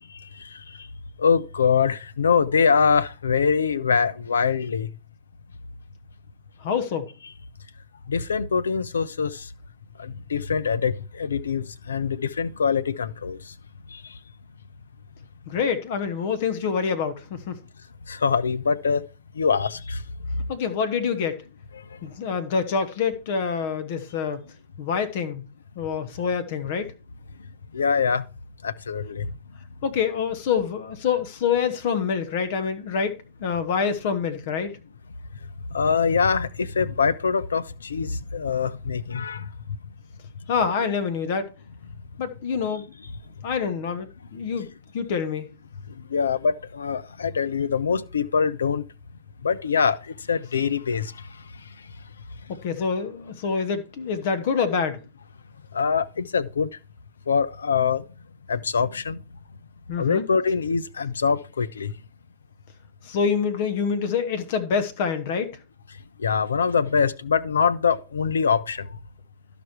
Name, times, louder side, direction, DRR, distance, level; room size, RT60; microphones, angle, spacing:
voice 1, 1.2-4.9 8.1-9.4 10.0-13.4 13.9-14.0 18.1-19.1 19.4-20.0 27.7-28.2 28.6-29.3 35.7-39.5 46.1-48.8 49.4-50.0 50.3-51.1 55.7-56.7 57.3-58.0 58.5-59.2 60.0-61.9 66.2-68.9, left 6 dB, 90° left, 0.6 m, -23 dB
voice 2, 6.6-7.1 15.5-17.6 20.5-21.4 22.0-24.4 24.8-25.4 25.7-26.9 29.8-34.7 40.5-41.5 42.2-42.9 43.4-44.7 44.9-45.5 52.5-55.0 59.9-60.3 63.0-65.5, left 6 dB, 65° left, 1.5 m, -26 dB
12.5 x 5.1 x 4.6 m
hypercardioid pair, 100°, 0 cm